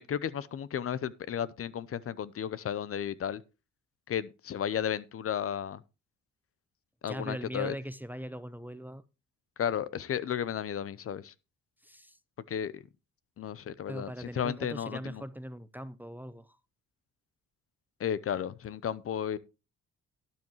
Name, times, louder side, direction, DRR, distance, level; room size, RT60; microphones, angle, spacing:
voice 1, 0.0-3.4 4.1-5.8 7.0-7.7 9.6-11.3 12.5-12.8 13.4-15.2 18.0-19.4, left 9 dB, 50° left, 0.7 m, -33 dB
voice 2, 7.1-9.0 11.8-12.2 13.9-16.6, equal, 5° right, 0.6 m, -40 dB
12.0 x 9.8 x 3.1 m
cardioid pair, 90°, 30 cm